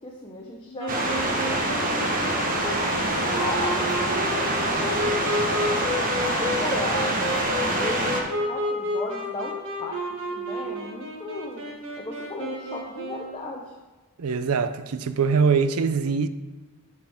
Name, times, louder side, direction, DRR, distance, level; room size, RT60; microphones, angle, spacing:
voice 1, 0.0-0.9 1.5-2.3 2.6-5.1 5.6-7.1 7.5-11.6 12.0-13.7, left 2 dB, 25° left, 0.9 m, -36 dB
sound 1, 0.8-13.4, left 1 dB, 65° right, 1.5 m, -31 dB
sound 2, 0.9-8.2, right 1 dB, 40° right, 1.2 m, -25 dB
voice 2, 14.2-16.3, right 5 dB, 85° right, 0.5 m, -23 dB
11.5 x 5.9 x 3.5 m
head